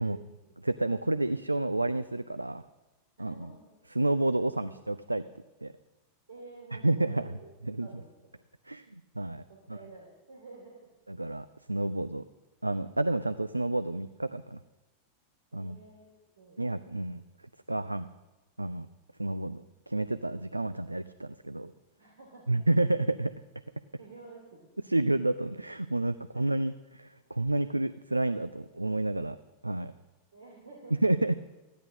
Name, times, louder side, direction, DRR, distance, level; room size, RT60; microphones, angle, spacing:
voice 1, 0.0-0.6 3.2-3.7 4.2-4.7 6.3-7.5 7.8-8.3 9.5-10.9 15.5-16.6 22.0-22.5 24.0-24.9 26.2-26.4 30.3-31.0, right 3 dB, 70° right, -1 dB, 2.7 m, -51 dB
voice 2, 0.6-2.6 3.2-3.5 3.9-5.2 5.6-5.7 6.7-7.3 7.7-7.9 8.7-9.4 11.1-12.2 12.6-14.6 15.5-15.8 16.6-17.2 17.7-18.1 18.6-18.9 19.2-21.7 22.5-23.3 24.9-29.4 29.6-29.9 31.0-31.4, right 2 dB, 85° right, 12 dB, 0.4 m, -30 dB
14.5 x 10.0 x 6.4 m, 1.1 s
figure-of-eight pair, 90°, 0 cm